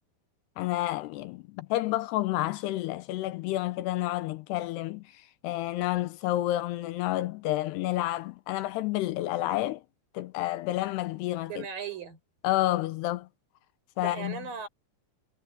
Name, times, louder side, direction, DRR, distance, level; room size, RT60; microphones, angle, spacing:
voice 1, 0.6-9.8 10.1-11.6 12.4-13.3 14.0-14.4, left 16 dB, 85° left, 2.5 m, -30 dB
voice 2, 11.5-12.2 14.0-14.7, right 6 dB, 50° right, 7.9 m, -37 dB
omnidirectional pair, 5.2 m